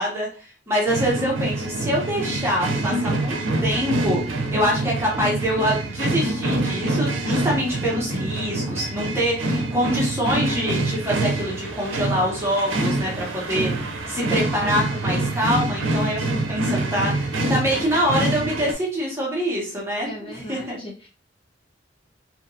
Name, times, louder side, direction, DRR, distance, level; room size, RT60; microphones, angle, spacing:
voice 1, 0.0-20.8, equal, 15° right, -4 dB, 0.8 m, -25 dB
sound 1, 0.9-18.7, right 2 dB, 80° right, 0.5 m, -25 dB
voice 2, 20.0-21.1, left 1 dB, 30° left, -5 dB, 0.7 m, -37 dB
2.7 x 2.2 x 2.6 m, 0.38 s
head